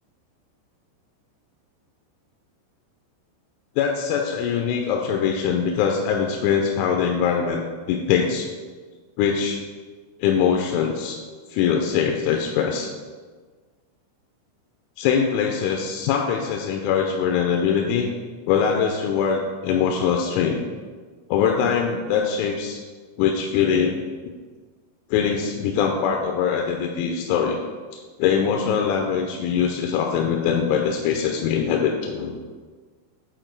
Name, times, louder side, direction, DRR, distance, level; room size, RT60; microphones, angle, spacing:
voice 1, 3.8-7.6 7.9-8.5 9.2-9.6 10.2-11.2 11.5-12.9 15.0-18.1 18.5-20.6 21.3-22.8 23.2-24.0 25.1-27.6 27.9-32.4, left 7 dB, 85° left, 2 dB, 3.0 m, -22 dB
7.9 x 4.4 x 4.6 m, 1.5 s
omnidirectional pair, 5.5 m